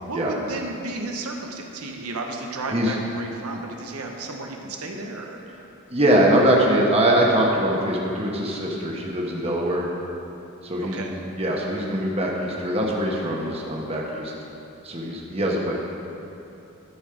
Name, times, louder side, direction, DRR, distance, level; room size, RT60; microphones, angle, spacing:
voice 1, 0.0-5.4 10.8-11.1, right 2 dB, 80° right, 2 dB, 0.9 m, -33 dB
voice 2, 5.9-9.9 10.6-14.3 14.8-15.7, right 1 dB, 25° right, -2 dB, 1.2 m, -22 dB
13.0 x 6.3 x 5.0 m, 2.9 s
head